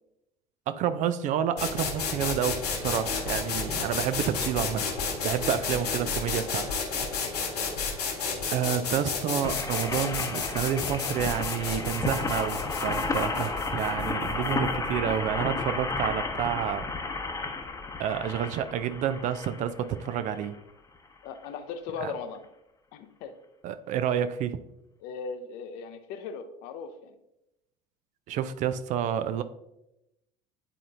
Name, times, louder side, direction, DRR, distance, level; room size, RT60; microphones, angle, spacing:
voice 1, 0.7-4.9 5.2-6.7 8.5-16.9 18.0-20.5 22.0-22.1 23.6-24.6 28.3-29.4, right 9 dB, 40° right, 12 dB, 0.4 m, -29 dB
sound 1, 1.6-15.3, left 5 dB, 75° left, 1.7 m, -32 dB
sound 2, 9.4-20.5 21.2-21.3 21.4-21.5, left 3 dB, 15° left, 0.9 m, -32 dB
voice 2, 21.2-22.4 22.9-23.3 25.0-27.2, left 5 dB, 50° left, 9 dB, 0.7 m, -38 dB
9.9 x 4.2 x 2.6 m, 0.87 s
figure-of-eight pair, 65°, 20 cm